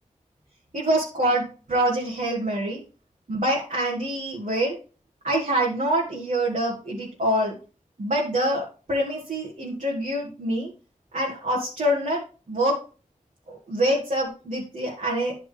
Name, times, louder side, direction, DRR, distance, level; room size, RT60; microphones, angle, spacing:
voice 1, 0.7-2.8 3.3-4.8 5.2-7.5 8.0-10.7 11.1-12.2 12.5-12.8 13.5-15.4, right 1 dB, 65° right, -4 dB, 1.9 m, -25 dB
10.5 x 4.6 x 3.3 m, 0.36 s
wide cardioid pair, 50°, 14 cm